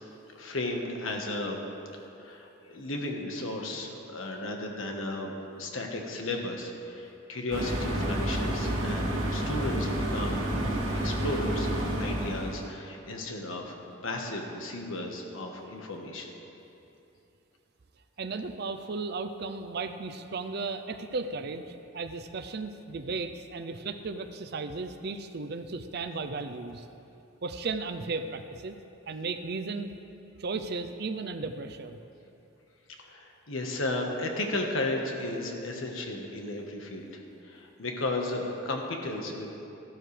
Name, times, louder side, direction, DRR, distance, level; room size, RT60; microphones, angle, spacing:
voice 1, 0.3-1.6 2.2-10.5 11.0-16.3 33.0-39.5, left 2 dB, 90° left, 2 dB, 1.4 m, -34 dB
sound 1, 7.5-12.7, right 1 dB, 85° right, 1.8 m, -30 dB
voice 2, 18.2-26.9 27.4-28.7 29.1-30.0 30.4-32.0, right 3 dB, 55° right, 8 dB, 0.5 m, -35 dB
14.0 x 12.0 x 3.3 m, 2.8 s
head